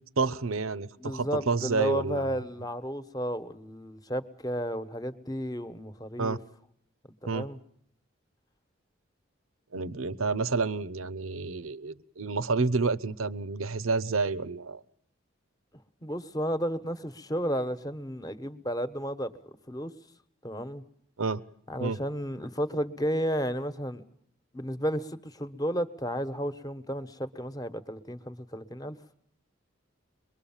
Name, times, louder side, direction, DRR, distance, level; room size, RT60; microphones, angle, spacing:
voice 1, 0.2-2.4 6.2-6.4 7.3-7.5 9.7-14.8 21.2-21.4 21.8-22.0, right 4 dB, 85° right, 18 dB, 0.9 m, -29 dB
voice 2, 1.0-6.4 7.2-7.6 16.0-19.3 19.7-19.9 20.4-20.8 21.7-24.0 24.5-29.0, equal, 20° left, 11 dB, 1.1 m, -32 dB
23.5 x 22.5 x 7.3 m, 0.67 s
head